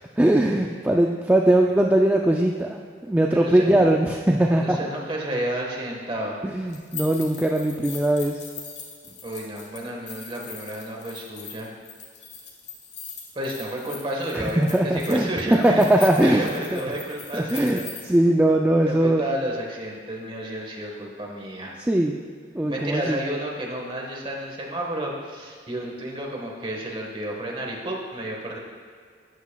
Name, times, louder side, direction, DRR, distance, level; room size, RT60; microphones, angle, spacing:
voice 1, 0.2-4.8 6.4-8.4 14.3-16.4 16.7-16.8 17.3-17.8 18.1-19.3 21.8-22.2 22.5-23.2, right 1 dB, 10° right, 1 dB, 0.3 m, -20 dB
voice 2, 3.3-3.8 4.6-6.4 9.2-11.7 13.3-17.8 18.9-21.8 22.7-28.6, right 1 dB, 30° right, -1 dB, 1.4 m, -31 dB
sound 1, 6.7-18.0, left 6 dB, 65° left, 1.5 m, -41 dB
12.5 x 9.4 x 2.3 m, 2.1 s
head